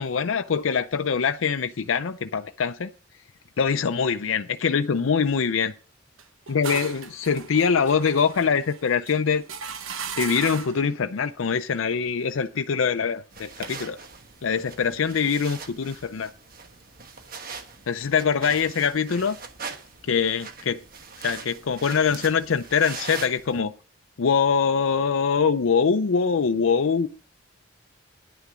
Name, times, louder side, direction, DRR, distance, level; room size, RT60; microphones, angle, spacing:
voice 1, 0.0-2.9 3.6-5.7 6.5-9.4 10.2-14.0 14.4-16.3 17.9-19.4 20.1-20.8 21.2-23.7 24.2-27.1, left 6 dB, 75° left, 0.5 m, -23 dB
sound 1, 6.2-10.9, right 6 dB, 85° right, 1.0 m, -37 dB
sound 2, 13.3-23.6, right 5 dB, 45° right, 1.3 m, -41 dB
10.0 x 6.7 x 6.1 m
head